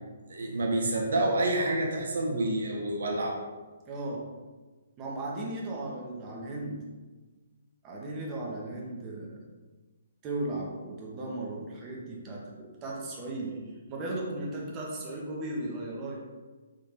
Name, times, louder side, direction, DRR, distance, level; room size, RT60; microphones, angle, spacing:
voice 1, 0.3-3.3, right 2 dB, 65° right, 0 dB, 0.6 m, -28 dB
voice 2, 3.9-4.3 5.0-6.8 7.8-9.4 10.2-16.2, right 2 dB, 25° right, -3 dB, 0.7 m, -36 dB
3.6 x 2.8 x 2.8 m, 1.3 s
figure-of-eight pair, 130°, 0 cm